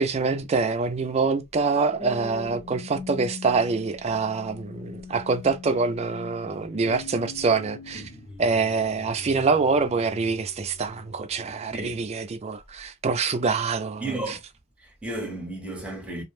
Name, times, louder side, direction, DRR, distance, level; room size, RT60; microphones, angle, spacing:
voice 1, 0.0-8.1 8.4-14.4, right 4 dB, 30° right, 0.3 m, -25 dB
sound 1, 1.5-12.0 12.6-12.9, left 3 dB, 35° left, 0.5 m, -42 dB
voice 2, 14.0-14.4 14.8-16.2, right 2 dB, 5° right, 0.7 m, -33 dB
2.4 x 2.1 x 3.1 m
head